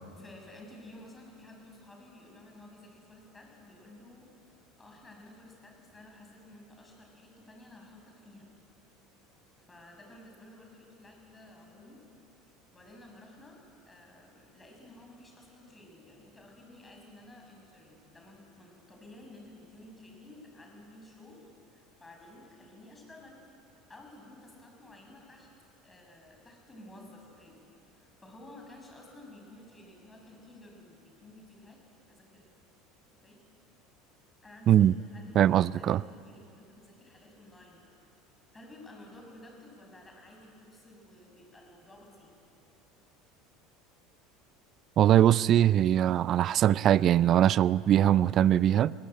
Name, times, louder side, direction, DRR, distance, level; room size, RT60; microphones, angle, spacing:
voice 1, 0.2-4.3 4.8-8.5 9.6-12.0 12.7-21.4 21.7-23.4 23.9-25.5 25.8-27.7 27.9-31.8 32.1-32.6 33.2-33.4 34.4-37.8 38.5-42.3, left 1 dB, 15° left, 6.6 m, -53 dB
voice 2, 35.4-36.0 45.0-48.9, right 11 dB, 45° right, 0.4 m, -22 dB
22.5 x 18.0 x 9.1 m
hypercardioid pair, 70°, 0 cm